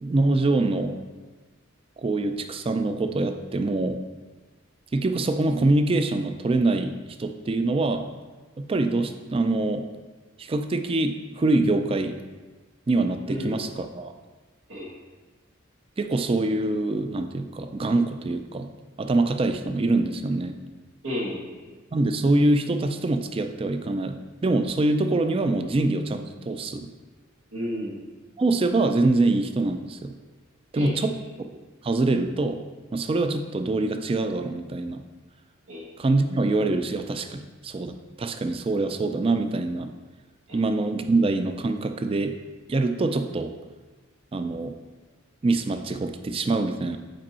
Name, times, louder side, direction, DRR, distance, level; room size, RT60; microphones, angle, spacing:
voice 1, 0.0-1.0 2.0-4.0 4.9-8.1 8.6-9.9 10.4-12.2 12.9-14.1 16.0-18.7 19.0-20.6 21.9-24.2 24.4-26.9 28.4-30.1 30.7-31.1 31.8-32.6 32.9-35.0 36.0-39.9 40.5-42.3 42.7-43.5 44.3-44.7 45.4-47.0, right 2 dB, 25° right, 7 dB, 0.3 m, -24 dB
voice 2, 13.2-13.6 14.7-14.9 21.0-21.7 27.5-28.0 30.7-31.0 35.7-35.8 40.5-40.6, equal, 90° right, -5 dB, 1.8 m, -32 dB
5.2 x 4.5 x 4.2 m, 1.3 s
head